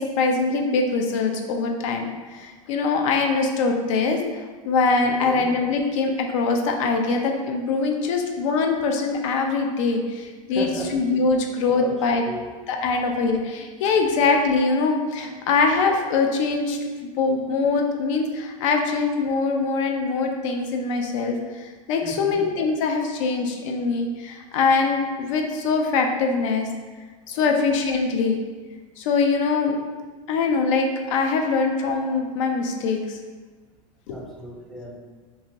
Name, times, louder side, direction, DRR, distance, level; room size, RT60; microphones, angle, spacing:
voice 1, 0.0-4.2 4.7-12.2 12.7-26.7 27.3-28.4 29.0-29.8 30.3-33.2 34.1-34.2, left 4 dB, 65° left, 3 dB, 0.5 m, -23 dB
voice 2, 10.5-10.9 11.7-11.9 12.2-12.5 22.0-22.4 27.3-27.5 34.1-35.0, left 1 dB, ahead, -3 dB, 0.4 m, -35 dB
2.7 x 2.6 x 2.8 m, 1.4 s
supercardioid pair, 125°, 17 cm